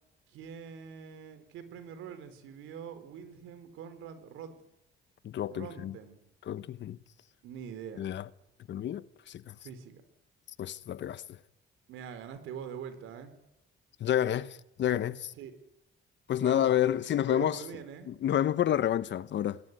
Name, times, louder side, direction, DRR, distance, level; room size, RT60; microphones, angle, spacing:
voice 1, 0.3-4.6 5.5-6.2 7.4-8.0 9.6-10.0 11.9-13.3 15.3-15.5 16.4-16.8 17.3-18.1, right 8 dB, 90° right, 4.4 m, -44 dB
voice 2, 5.2-5.9 6.5-7.0 8.0-8.2 8.7-9.5 10.6-11.2 14.0-15.3 16.3-17.6 18.1-19.6, left 11 dB, 65° left, 1.2 m, -29 dB
26.0 x 21.5 x 9.5 m
cardioid pair, 90°, 20 cm